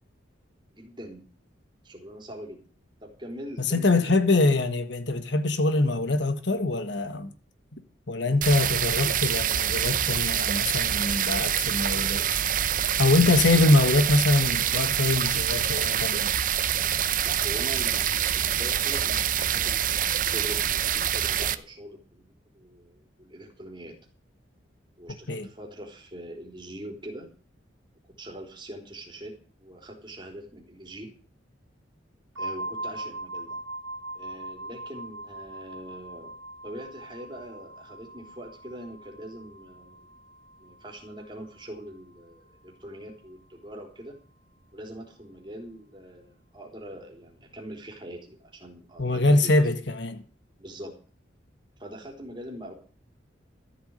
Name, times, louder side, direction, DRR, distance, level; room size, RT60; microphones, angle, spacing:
voice 1, 0.7-1.3 1.8-2.6 3.0-4.4 17.2-24.0 25.0-27.3 28.2-31.1 32.4-33.6 34.1-36.3 36.6-40.2 40.6-44.1 44.7-49.7 50.6-50.9 51.8-52.7, right 1 dB, 25° right, 3.6 m, -42 dB
voice 2, 3.6-7.3 8.1-12.2 13.0-16.3 25.3-25.5 49.0-50.2, left 2 dB, 65° left, 1.4 m, -23 dB
sound 1, 8.4-21.5, right 10 dB, 45° right, 0.7 m, -26 dB
sound 2, 32.4-42.0, right 2 dB, 80° right, 1.4 m, -41 dB
13.5 x 8.2 x 7.9 m
head